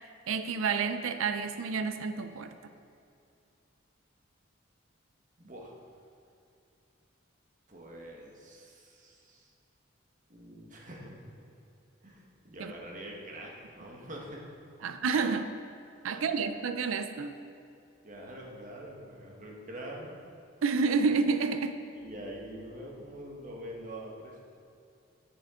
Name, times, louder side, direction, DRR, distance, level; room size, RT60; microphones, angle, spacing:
voice 1, 0.3-2.7 12.6-12.7 14.8-15.6 16.0-17.4 20.6-21.8, right 5 dB, 90° right, 10 dB, 0.4 m, -29 dB
voice 2, 5.4-5.7 7.7-9.5 10.3-11.4 12.0-14.4 16.1-16.3 18.0-20.2 21.9-24.4, right 1 dB, 40° right, -1 dB, 1.3 m, -45 dB
10.0 x 8.5 x 3.7 m, 2.6 s
head